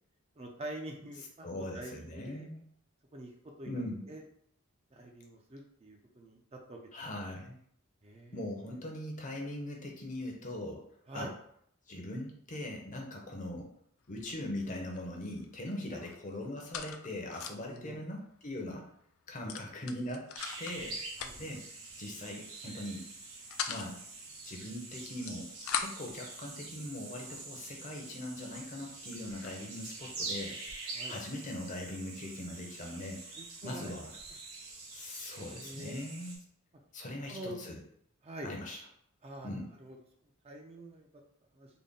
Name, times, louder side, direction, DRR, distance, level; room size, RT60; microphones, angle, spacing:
voice 1, 0.4-2.5 3.1-3.3 3.6-4.2 4.9-6.4 6.7-6.9 8.0-8.4 11.1-11.3 17.6-18.0 19.4-19.5 21.2-21.3 30.9-31.1 33.3-33.9 35.4-36.0 37.3-37.6 38.2-38.5 39.2-40.0 40.4-41.1 41.5-41.7, right 1 dB, 30° right, 1 dB, 0.4 m, -45 dB
voice 2, 1.4-2.6 3.7-4.0 6.9-7.6 8.3-10.8 11.1-11.3 11.9-13.7 14.1-18.9 19.3-20.3 20.6-21.7 22.0-23.0 23.7-24.0 24.4-25.5 25.8-30.6 31.1-33.2 33.6-34.1 34.9-36.4 36.9-37.8 38.4-38.8 39.4-39.7, left 1 dB, 35° left, 1 dB, 0.6 m, -41 dB
Pistol - Reload cock shoot sound effects., 14.0-14.3 14.6-15.5 15.7-17.8 18.2-18.3 18.5-18.7 19.5-20.8 21.1-21.6 22.4-22.7 23.1-23.9 25.0-26.1 26.9-27.0 27.6-27.7 28.2-28.3 28.5-29.6, left 7 dB, 70° left, 0.4 m, -40 dB
sound 1, 20.3-36.4, right 3 dB, 75° right, 1.1 m, -45 dB
3.8 x 2.1 x 3.6 m, 0.67 s
head